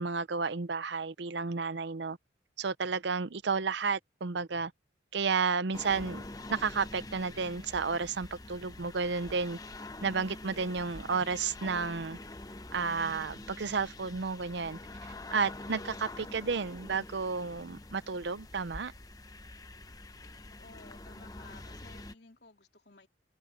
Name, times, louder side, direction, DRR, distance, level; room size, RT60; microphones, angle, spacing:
voice 1, 0.0-2.2 2.6-4.7 5.1-6.2 6.5-9.6 10.0-12.2 12.7-14.8 15.3-18.9, right 5 dB, 65° right, 0.7 m, -32 dB
sound 1, 5.7-22.1, left 2 dB, 20° left, 0.9 m, -46 dB
voice 2, 20.5-23.1, left 3 dB, 60° left, 3.4 m, -56 dB
head